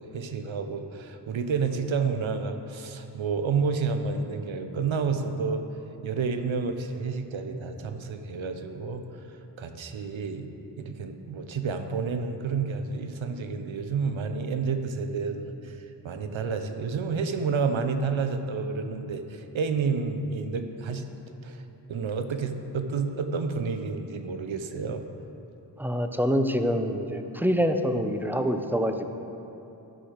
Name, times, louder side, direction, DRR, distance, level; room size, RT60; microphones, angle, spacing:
voice 1, 0.0-5.6 6.0-10.5 10.8-21.0 21.4-25.0, right 5 dB, 75° right, 7 dB, 0.8 m, -30 dB
voice 2, 25.8-29.0, equal, 5° right, 7 dB, 0.7 m, -26 dB
11.5 x 4.9 x 6.5 m, 3.0 s
cardioid pair, 45°, 47 cm